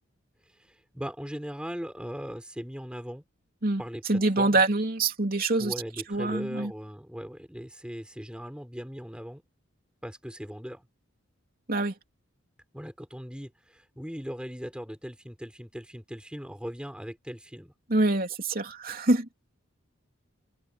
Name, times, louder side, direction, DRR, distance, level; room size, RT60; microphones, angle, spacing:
voice 1, 0.6-3.2 3.8-4.0 4.4-4.6 5.6-9.4 10.0-10.8 12.7-17.7, equal, 5° right, 6.5 m, -39 dB
voice 2, 4.1-5.7 6.1-6.7 11.7-11.9 17.9-19.3, right 2 dB, 45° right, 3.3 m, -25 dB
open air
head